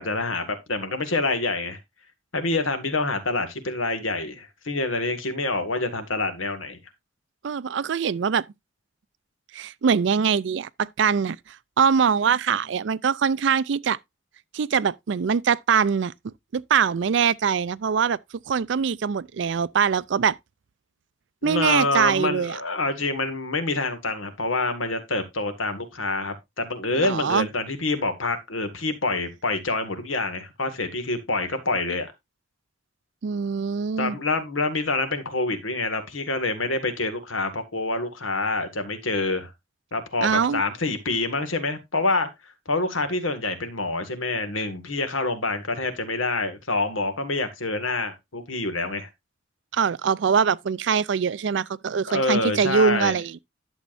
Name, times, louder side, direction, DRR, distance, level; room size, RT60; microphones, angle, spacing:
voice 1, 0.0-1.8 2.3-6.8 21.4-32.1 34.0-39.5 39.9-49.1 52.1-53.2, left 3 dB, 80° left, 1.9 m, -27 dB
voice 2, 7.4-8.4 9.5-14.0 14.5-18.2 18.5-20.4 21.4-22.6 26.9-27.5 33.2-34.2 40.2-40.6 49.7-53.4, right 6 dB, 65° right, 0.4 m, -23 dB
11.5 x 7.2 x 2.5 m
head